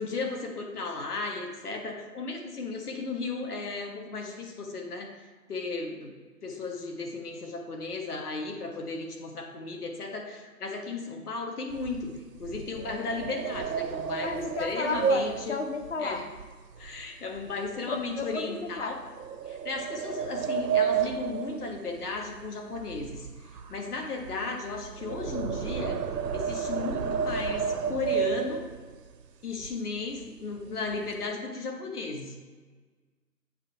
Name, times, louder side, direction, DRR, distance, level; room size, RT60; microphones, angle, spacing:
voice 1, 0.0-5.1 5.5-6.1 6.4-15.5 16.0-16.2 16.7-19.0 19.5-23.3 23.7-26.0 26.3-28.6 29.4-32.3, left 3 dB, 70° left, 2 dB, 1.4 m, -35 dB
sound 1, 11.7-17.1 17.4-17.7 18.2-18.3 19.2-22.5 22.7-29.0 29.6-29.7 30.0-30.3 30.6-31.2, right 7 dB, 85° right, 0.7 m, -31 dB
voice 2, 14.2-16.3 17.7-19.0, left 3 dB, 45° left, 4 dB, 0.8 m, -33 dB
7.9 x 2.8 x 5.8 m, 1.4 s
hypercardioid pair, 175°, 48 cm